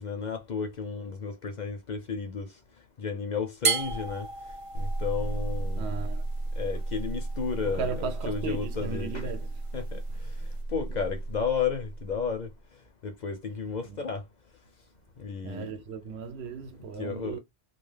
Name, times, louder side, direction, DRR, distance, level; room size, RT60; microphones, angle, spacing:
voice 1, 0.0-2.5 3.0-4.3 4.7-6.0 6.6-9.2 9.7-10.0 10.7-12.5 13.0-14.2 15.2-15.7 17.0-17.4, left 6 dB, 55° left, 0.6 m, -33 dB
sound 1, 3.6-10.6, right 5 dB, 60° right, 0.3 m, -36 dB
sound 2, 4.8-12.6, right 2 dB, 85° left, 0.9 m, -34 dB
voice 2, 5.7-6.2 7.6-9.7 10.1-10.2 10.9-11.1 13.8-14.1 15.4-17.4, right 5 dB, 80° right, 0.9 m, -36 dB
2.4 x 2.3 x 3.2 m
omnidirectional pair, 1.1 m